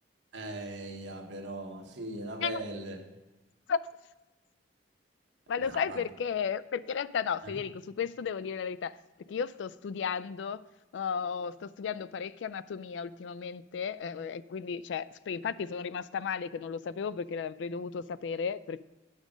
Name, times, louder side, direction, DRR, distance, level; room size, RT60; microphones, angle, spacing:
voice 1, 0.3-3.0 5.7-6.0 7.4-7.6, right 2 dB, 75° right, 3 dB, 1.2 m, -39 dB
voice 2, 5.5-9.0 9.3-10.6 10.9-18.8, left 6 dB, 70° left, 16 dB, 0.3 m, -34 dB
9.5 x 6.2 x 5.0 m, 1.1 s
head